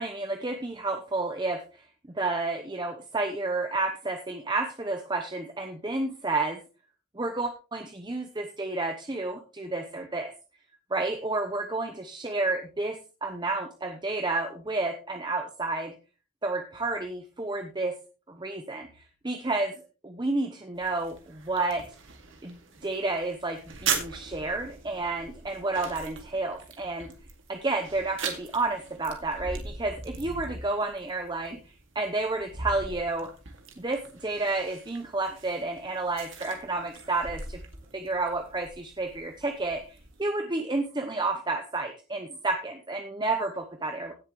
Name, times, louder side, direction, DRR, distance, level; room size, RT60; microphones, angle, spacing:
voice 1, 0.0-1.6 2.1-6.6 7.1-10.3 10.9-15.9 16.4-18.0 18.3-19.7 20.0-21.8 22.4-27.1 27.5-33.3 33.8-37.6 37.9-44.1, right 2 dB, 20° right, 5 dB, 0.8 m, -31 dB
sound 1, 20.7-40.2, right 5 dB, 55° right, 2.2 m, -40 dB
17.0 x 7.3 x 3.1 m, 0.33 s
head